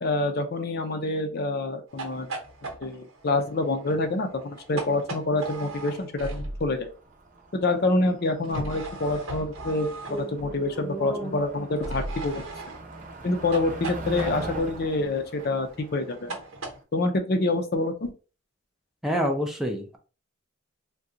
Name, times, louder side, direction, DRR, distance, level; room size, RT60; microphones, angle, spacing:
voice 1, 0.0-2.3 2.8-6.9 7.5-12.4 13.2-16.3 16.9-18.1, left 2 dB, 50° left, 6 dB, 0.5 m, -27 dB
sound 1, 1.9-6.9 8.4-10.7 11.8-16.8, right 2 dB, 80° right, 1.0 m, -39 dB
Motor vehicle (road), 6.4-16.8, right 2 dB, 40° right, 0.7 m, -41 dB
voice 2, 10.1-11.4 19.0-20.0, equal, ahead, 1 dB, 0.5 m, -30 dB
3.7 x 2.2 x 2.7 m, 0.34 s
head